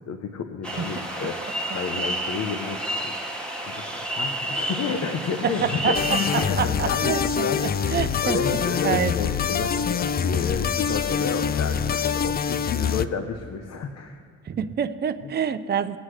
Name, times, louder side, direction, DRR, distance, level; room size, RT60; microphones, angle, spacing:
voice 1, 0.1-3.1 3.5-14.2 15.2-15.3, left 5 dB, 60° left, 6 dB, 0.9 m, -31 dB
sound 1, 0.6-6.5, right 1 dB, 5° left, 1.8 m, -30 dB
voice 2, 5.4-5.9 6.6-7.5 7.9-8.4 8.8-9.1 14.5-16.0, right 8 dB, 35° right, 9 dB, 0.6 m, -26 dB
sound 2, 5.9-13.1, left 7 dB, 30° left, 0.4 m, -25 dB
19.5 x 7.9 x 3.3 m, 2.2 s
cardioid pair, 90°, 30 cm